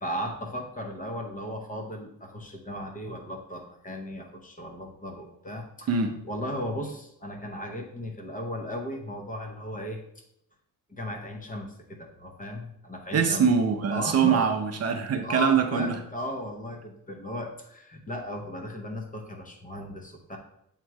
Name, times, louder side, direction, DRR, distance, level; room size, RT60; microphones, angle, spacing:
voice 1, 0.0-6.0 6.2-10.2 10.9-13.5 13.9-14.6 15.2-20.4, left 1 dB, 25° left, 2 dB, 0.7 m, -36 dB
voice 2, 13.1-15.9, right 6 dB, 45° right, 5 dB, 0.6 m, -23 dB
7.2 x 3.0 x 4.5 m, 0.77 s
wide cardioid pair, 175°, 35 cm